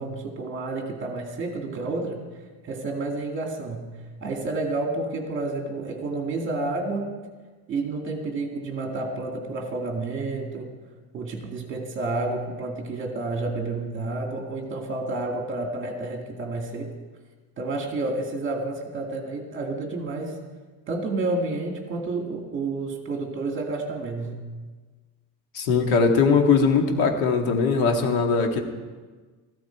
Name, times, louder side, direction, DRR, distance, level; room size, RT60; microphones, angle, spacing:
voice 1, 0.0-2.2 2.6-3.9 4.2-7.1 7.7-10.7 11.1-16.9 17.6-20.3 20.9-24.4, right 2 dB, 30° right, 2 dB, 2.2 m, -30 dB
voice 2, 25.5-28.6, left 5 dB, 65° left, 4 dB, 1.9 m, -20 dB
15.5 x 14.5 x 4.6 m, 1.4 s
cardioid pair, 180°, 39 cm